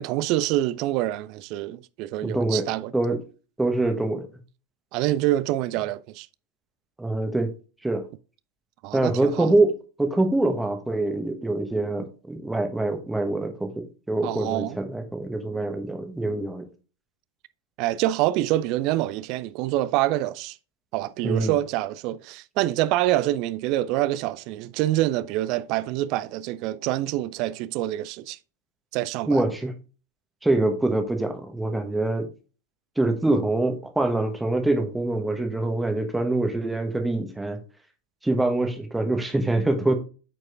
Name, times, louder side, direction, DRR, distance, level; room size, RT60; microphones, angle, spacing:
voice 1, 0.0-2.9 4.9-6.3 8.8-9.5 14.2-14.8 17.8-20.6 20.9-28.4 28.9-29.4, right 15 dB, 40° right, 0.4 m, -26 dB
voice 2, 2.2-3.2 3.6-4.3 7.0-7.5 7.8-8.1 8.9-9.7 10.0-16.6 21.2-21.6 29.2-29.7 30.4-32.3 33.0-37.6 38.2-40.0, right 2 dB, 5° right, 1.1 m, -24 dB
8.7 x 4.8 x 2.4 m
figure-of-eight pair, 90°, 0 cm